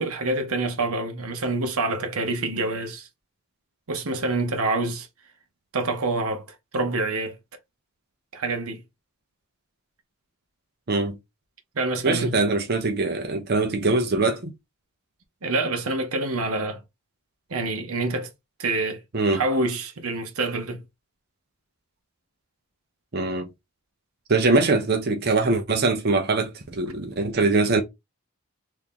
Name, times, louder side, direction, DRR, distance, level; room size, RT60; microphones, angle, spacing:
voice 1, 0.0-3.1 3.9-5.1 5.7-6.5 6.7-7.4 8.3-8.8 11.7-12.3 15.4-16.8 17.5-18.3 18.6-19.0 19.3-20.8, right 2 dB, 75° right, 0.8 m, -26 dB
voice 2, 12.0-14.5 19.1-19.4 23.1-23.5 24.3-27.8, right 3 dB, 45° right, 0.6 m, -22 dB
2.9 x 2.7 x 3.6 m
head